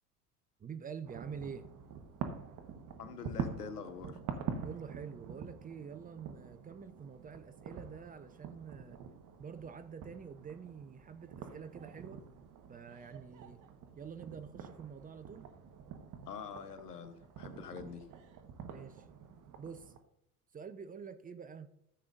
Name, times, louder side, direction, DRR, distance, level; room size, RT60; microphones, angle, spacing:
voice 1, 0.6-1.7 4.6-9.0 9.4-12.2 12.7-13.6 14.0-15.4 18.7-19.1 19.6-19.9 20.5-21.7, right 6 dB, 20° right, 0.7 m, -47 dB
sound 1, 1.0-20.0, right 7 dB, 40° right, 1.3 m, -46 dB
voice 2, 3.0-4.2 16.3-18.1, left 6 dB, 80° left, 1.1 m, -45 dB
14.0 x 7.5 x 2.6 m
figure-of-eight pair, 70°, 46 cm